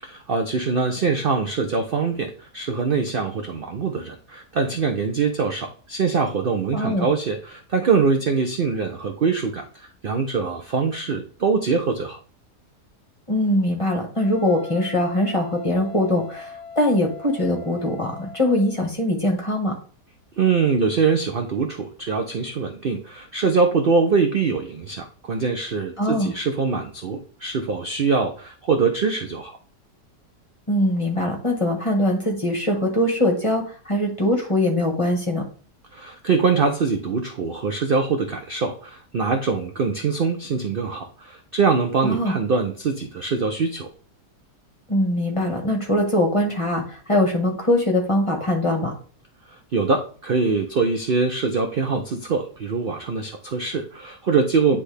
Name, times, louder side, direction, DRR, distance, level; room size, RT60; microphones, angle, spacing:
voice 1, 0.0-12.2 20.4-29.6 35.9-43.9 49.5-54.8, right 5 dB, 65° right, 5 dB, 0.5 m, -23 dB
voice 2, 6.7-7.1 13.3-19.7 26.0-26.3 30.7-35.4 42.0-42.3 44.9-48.9, left 1 dB, 20° left, 1 dB, 1.2 m, -22 dB
Wind instrument woodwind instrument, 14.1-18.8, left 6 dB, 30° right, 2.1 m, -40 dB
9.9 x 3.4 x 3.3 m, 0.41 s
omnidirectional pair, 1.8 m